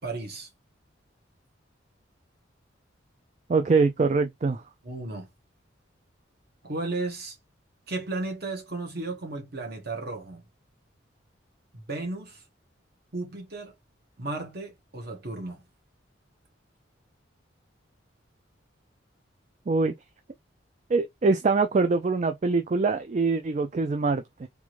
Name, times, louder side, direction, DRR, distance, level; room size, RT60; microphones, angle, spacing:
voice 1, 0.0-0.5 4.8-5.3 6.6-7.4 7.9-10.4 11.7-12.4 13.1-13.7 14.2-15.6, right 2 dB, 55° right, 1.2 m, -34 dB
voice 2, 3.5-4.6 19.7-19.9 20.9-24.5, right 4 dB, 35° right, 0.3 m, -24 dB
3.6 x 2.5 x 3.1 m
head